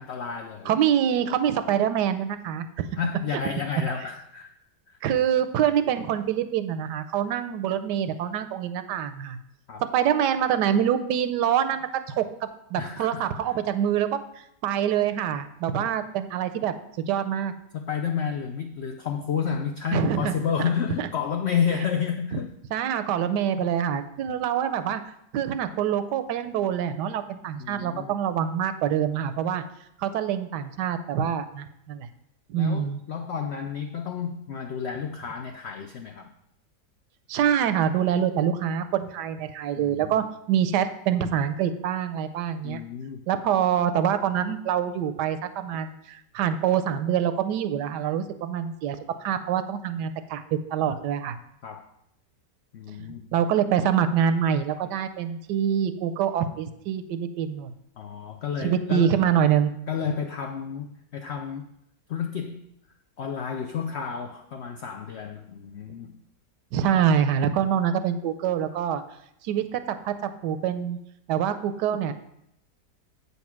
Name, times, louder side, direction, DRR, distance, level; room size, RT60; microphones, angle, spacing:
voice 1, 0.0-0.7 2.9-4.5 4.9-5.0 9.7-9.8 12.8-13.3 17.7-22.5 23.5-23.7 27.6-28.1 32.5-36.3 39.8-40.2 42.6-43.2 51.6-51.8 52.7-53.3 58.0-59.2 59.9-61.7 62.1-62.7 63.2-66.2 66.9-67.1, left 7 dB, 85° left, 5 dB, 0.5 m, -31 dB
voice 2, 0.7-2.8 3.3-3.4 5.0-9.4 9.9-17.5 19.9-20.3 21.0-21.1 22.7-25.0 25.3-29.6 30.0-32.1 32.5-33.0 37.3-42.8 43.3-51.4 53.3-57.7 58.6-59.7 66.7-69.0 69.4-71.0 71.3-72.1, right 9 dB, 80° right, 11 dB, 1.2 m, -25 dB
8.2 x 4.2 x 5.9 m, 0.78 s
omnidirectional pair, 1.8 m